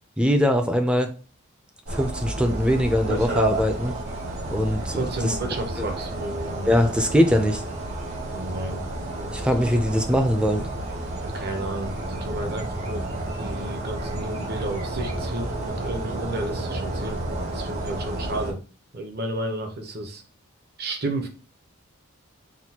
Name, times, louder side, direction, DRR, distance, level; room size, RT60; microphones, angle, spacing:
voice 1, 0.2-1.2 1.9-4.0 4.5-5.0 5.2-5.4 5.8-5.9 6.7-7.6 9.3-10.7, equal, 5° right, 5 dB, 0.4 m, -22 dB
sound 1, 1.9-18.5, right 2 dB, 75° right, 1.9 m, -31 dB
voice 2, 4.9-6.7 8.3-9.5 11.2-13.1 13.4-18.6 18.9-20.2 20.8-21.3, right 1 dB, 50° right, 4 dB, 0.8 m, -32 dB
6.0 x 2.3 x 2.8 m, 0.36 s
head